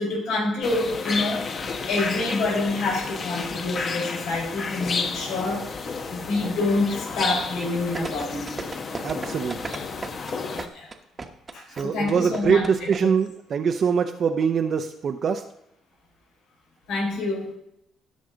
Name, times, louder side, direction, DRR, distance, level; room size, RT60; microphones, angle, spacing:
voice 1, 0.0-1.6 1.9-5.7 6.1-8.5 10.7-10.9 11.5-13.1 16.9-17.5, left 2 dB, 80° left, -3 dB, 4.6 m, -27 dB
sound 1, 0.6-10.7, left 4 dB, 40° left, 1.0 m, -31 dB
sound 2, 7.9-13.0 13.3-13.4, right 4 dB, 25° right, 1.1 m, -35 dB
voice 2, 9.0-9.7 11.8-15.4, right 6 dB, 45° right, 5 dB, 0.6 m, -23 dB
16.5 x 6.4 x 3.9 m, 0.80 s
cardioid pair, 120°, 0 cm